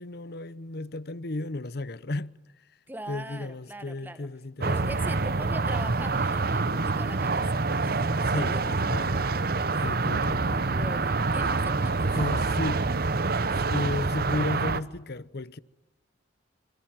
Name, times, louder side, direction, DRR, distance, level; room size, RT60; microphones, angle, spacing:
voice 1, 0.0-2.3 3.1-5.0 8.3-9.1 9.8-10.7 12.1-12.8 13.2-13.3 13.7-15.6, left 2 dB, 55° left, 0.9 m, -33 dB
voice 2, 2.9-4.3 4.6-7.4 7.8-8.0 8.3-9.4 9.7-9.9 10.7-12.8, right 1 dB, 10° right, 1.8 m, -42 dB
sound 1, 4.6-14.8, right 3 dB, 50° right, 0.9 m, -26 dB
25.5 x 25.0 x 7.6 m
head